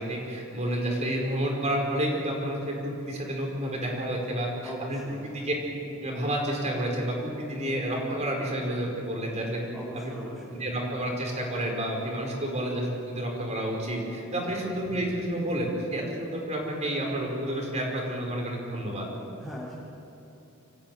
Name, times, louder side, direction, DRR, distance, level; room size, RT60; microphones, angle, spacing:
voice 1, 0.0-9.6 10.0-10.1 10.6-19.0, right 1 dB, 35° right, 0 dB, 5.2 m, -30 dB
voice 2, 4.6-5.2 9.7-10.6 14.3-14.6 19.4-19.7, equal, 5° left, -9 dB, 3.7 m, -40 dB
26.0 x 15.0 x 9.1 m, 2.9 s
head